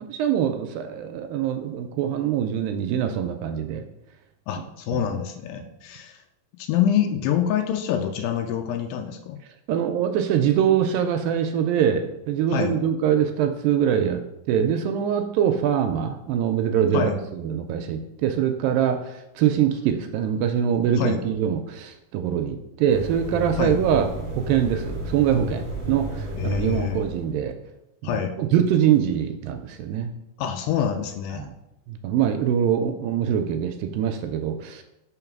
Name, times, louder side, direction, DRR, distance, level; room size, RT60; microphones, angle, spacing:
voice 1, 0.1-3.8 4.9-5.0 9.7-14.2 14.5-24.1 24.4-27.6 28.0-30.1 31.3-31.5 31.9-34.8, right 9 dB, 85° right, 7 dB, 2.2 m, -23 dB
voice 2, 4.5-6.2 6.6-9.4 12.5-12.8 16.9-17.2 21.0-21.2 23.6-23.8 26.4-27.0 28.0-28.3 30.4-31.5, left 9 dB, 85° left, 5 dB, 2.4 m, -26 dB
sound 1, 22.9-27.4, right 1 dB, 40° right, 1.5 m, -33 dB
5.4 x 3.9 x 5.8 m, 0.87 s
omnidirectional pair, 4.1 m